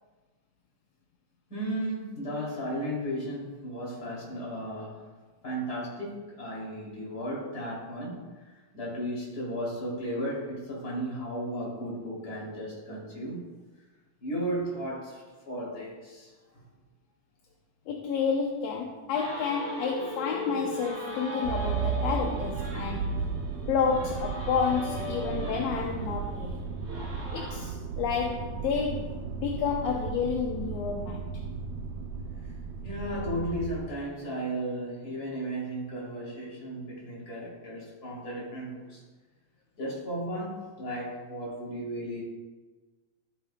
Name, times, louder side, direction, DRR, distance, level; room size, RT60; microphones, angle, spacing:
voice 1, 1.5-5.0 5.4-8.3 8.7-13.4 14.2-16.3 32.8-39.0 39.8-42.2, equal, 30° left, -5 dB, 3.4 m, -35 dB
voice 2, 17.9-23.1 23.7-26.7 27.3-31.2, left 6 dB, 75° left, 1 dB, 1.6 m, -30 dB
sound 1, 19.1-27.7, equal, 50° right, 3.6 m, -39 dB
Motor vehicle (road), 21.4-33.8, right 5 dB, 90° right, 2.2 m, -34 dB
14.0 x 8.7 x 2.3 m, 1.3 s
omnidirectional pair, 3.5 m